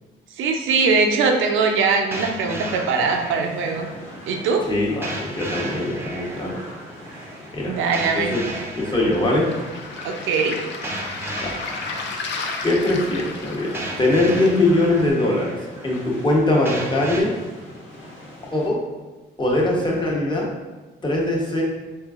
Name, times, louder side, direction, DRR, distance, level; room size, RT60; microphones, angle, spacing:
voice 1, 0.4-3.9 4.3-4.6 7.7-8.4 10.0-10.6, right 4 dB, 80° right, 3 dB, 0.5 m, -21 dB
sound 1, 2.1-17.2, right 1 dB, 10° right, 0.6 m, -35 dB
sound 2, 2.9-18.7, left 1 dB, 80° left, 1.3 m, -42 dB
voice 2, 4.7-6.6 7.5-7.8 8.1-8.4 8.7-9.5 11.4-11.5 12.6-15.6 15.8-17.4 18.5-18.8 19.4-20.5 21.0-21.6, left 2 dB, 25° left, -2 dB, 1.0 m, -21 dB
Waves surf, 9.1-15.1, left 4 dB, 65° left, 0.6 m, -34 dB
4.4 x 3.3 x 2.4 m, 1.2 s
cardioid pair, 90°, 20 cm